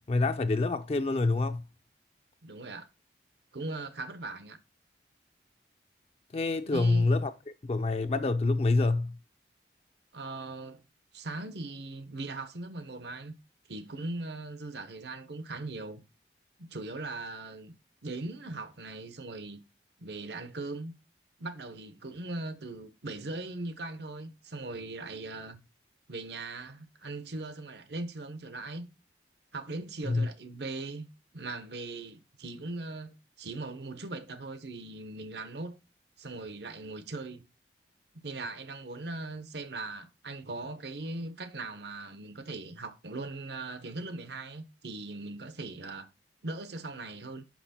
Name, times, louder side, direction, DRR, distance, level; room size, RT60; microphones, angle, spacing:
voice 1, 0.1-1.6 6.3-7.3 7.6-9.1 30.0-30.3, left 3 dB, 35° left, 0.4 m, -26 dB
voice 2, 2.4-2.9 3.5-4.6 6.7-7.1 10.1-10.8 11.1-13.3 13.7-16.0 16.6-17.7 18.0-19.6 20.0-21.0 21.4-25.6 26.1-28.9 29.5-31.1 31.3-35.8 36.2-37.5 38.1-46.1 46.4-47.4, right 2 dB, 75° right, 0.9 m, -39 dB
5.9 x 5.9 x 4.2 m
head